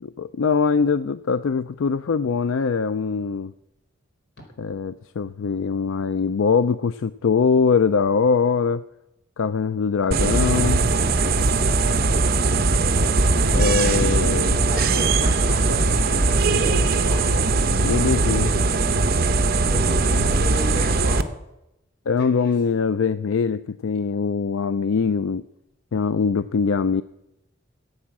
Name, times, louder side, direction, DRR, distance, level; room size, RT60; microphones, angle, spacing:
voice 1, 0.0-3.5 4.6-8.8 9.4-10.9 13.4-14.6 17.8-18.5 22.1-25.4 25.9-27.0, left 5 dB, 80° left, 14 dB, 0.4 m, -22 dB
sound 1, 10.1-21.2, right 3 dB, 50° right, 0.9 m, -20 dB
voice 2, 13.9-14.4 14.7-17.3 19.6-21.3 22.2-22.5, equal, 55° left, 0 dB, 5.3 m, -33 dB
14.5 x 8.5 x 7.3 m, 0.88 s
head